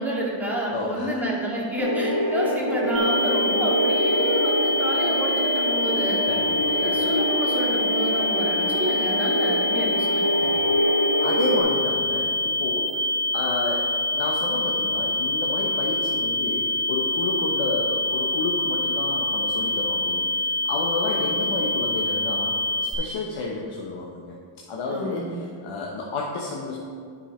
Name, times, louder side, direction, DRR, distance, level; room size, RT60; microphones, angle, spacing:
voice 1, 0.0-6.2 6.7-10.3 21.1-21.5 24.9-25.5, right 1 dB, 5° right, -5 dB, 1.8 m, -29 dB
voice 2, 0.7-1.2 6.2-7.2 10.4-10.8 11.2-13.1 13.3-20.3 20.6-22.6 22.8-24.4 24.7-26.8, left 3 dB, 65° left, -2 dB, 1.0 m, -31 dB
sound 1, 1.8-11.6, equal, 85° left, 1.8 m, -25 dB
sound 2, 2.9-22.9, left 1 dB, 25° right, 2.1 m, -25 dB
10.0 x 5.5 x 4.3 m, 2.2 s
cardioid pair, 120°, 50 cm